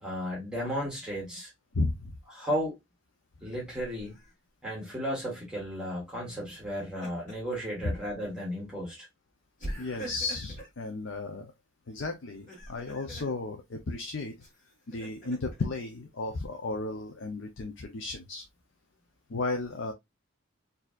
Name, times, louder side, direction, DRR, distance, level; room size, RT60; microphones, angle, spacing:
voice 1, 0.0-1.5 2.3-2.8 3.4-4.2 4.6-9.1, equal, 5° right, 1.4 m, -34 dB
voice 2, 1.7-2.2 7.8-7.9 9.8-11.5 11.9-14.3 14.9-18.4 19.3-19.9, left 3 dB, 60° left, 0.5 m, -34 dB
Laughter, 3.8-4.3 6.6-7.5 8.0-8.1 9.6-10.8 12.3-13.3 14.4-15.6, right 1 dB, 35° left, 1.7 m, -43 dB
4.3 x 2.7 x 2.4 m
head